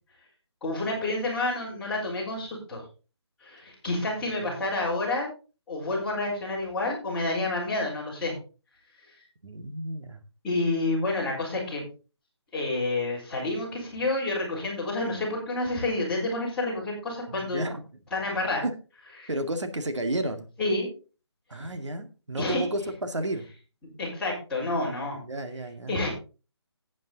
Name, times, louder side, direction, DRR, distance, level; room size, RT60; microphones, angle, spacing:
voice 1, 0.6-2.8 3.4-5.3 5.7-8.3 10.4-11.8 12.5-17.7 18.1-18.6 19.2-19.3 20.6-20.9 22.4-22.7 24.0-25.2 25.9-26.1, left 2 dB, 5° left, -8 dB, 4.4 m, -29 dB
voice 2, 9.4-10.2 17.3-17.8 19.3-20.5 21.5-23.5 25.2-26.0, right 1 dB, 90° right, 7 dB, 2.2 m, -32 dB
11.5 x 9.2 x 4.0 m, 0.34 s
figure-of-eight pair, 170°, 15 cm